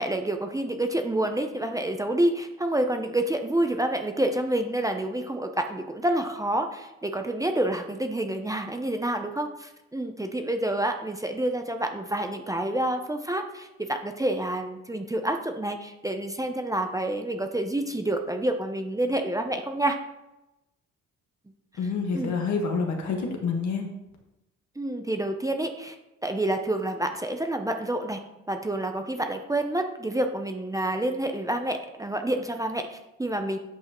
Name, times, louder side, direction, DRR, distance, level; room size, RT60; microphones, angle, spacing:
voice 1, 0.0-20.0 22.1-22.3 24.8-26.0 26.2-28.2 28.5-33.6, right 1 dB, 10° right, 5 dB, 0.7 m, -28 dB
voice 2, 21.8-23.8, left 5 dB, 70° left, 2 dB, 1.6 m, -27 dB
8.8 x 5.4 x 3.1 m, 0.94 s
cardioid pair, 90°, 30 cm